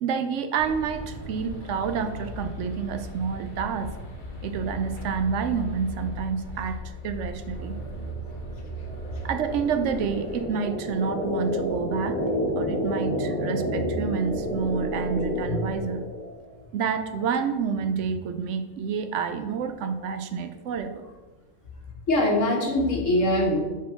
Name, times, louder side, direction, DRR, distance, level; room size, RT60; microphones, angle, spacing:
voice 1, 0.0-4.0 4.4-7.8 9.2-12.2 12.6-16.0 16.7-21.0, right 6 dB, 75° right, 8 dB, 0.9 m, -29 dB
sound 1, 0.6-10.5, left 1 dB, 45° left, 1.0 m, -37 dB
sound 2, 7.6-16.4, equal, 10° left, 0.9 m, -30 dB
voice 2, 22.1-23.6, left 1 dB, 80° left, -1 dB, 1.7 m, -22 dB
4.7 x 4.1 x 5.5 m, 1.2 s
omnidirectional pair, 1.3 m